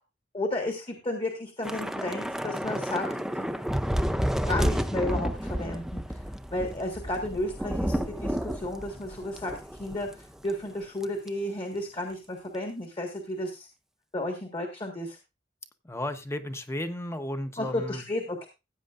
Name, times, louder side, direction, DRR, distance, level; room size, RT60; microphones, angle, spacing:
voice 1, 0.3-3.1 3.3-3.5 4.4-6.2 6.5-13.7 14.1-15.2 17.6-18.5, left 1 dB, 30° left, 3 dB, 1.6 m, -33 dB
Thunder / Rain, 1.6-10.2 10.5-10.7 11.0-11.3, equal, 5° right, 0.5 m, -31 dB
voice 2, 15.8-18.0, left 1 dB, 15° left, 9 dB, 0.9 m, -34 dB
15.5 x 9.0 x 2.5 m, 0.26 s
head